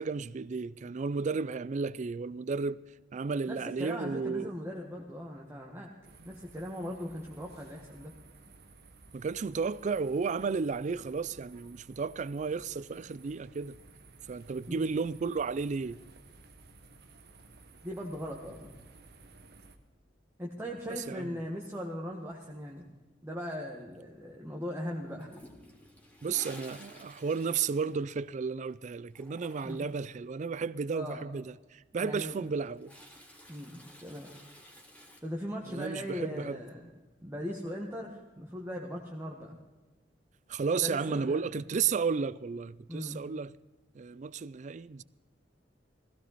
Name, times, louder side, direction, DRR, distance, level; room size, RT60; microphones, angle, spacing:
voice 1, 0.0-2.8 3.1-4.5 9.1-13.8 14.3-16.0 21.1-21.4 26.2-32.9 35.7-36.6 40.5-43.5 43.9-45.0, right 5 dB, 40° right, 0.4 m, -33 dB
voice 2, 3.5-5.9 6.2-8.1 14.7-14.8 17.8-18.8 20.4-22.9 23.2-25.3 29.6-29.9 30.9-31.2 32.0-32.4 33.5-34.3 35.2-36.9 37.2-39.6 40.7-41.6 42.9-43.2, equal, 15° right, 1.4 m, -39 dB
sound 1, 6.0-19.8, right 3 dB, 60° right, 1.3 m, -56 dB
Toilet flush, 25.2-28.7 28.9-30.1 32.2-35.2, equal, 10° left, 2.2 m, -53 dB
16.0 x 15.5 x 4.1 m
head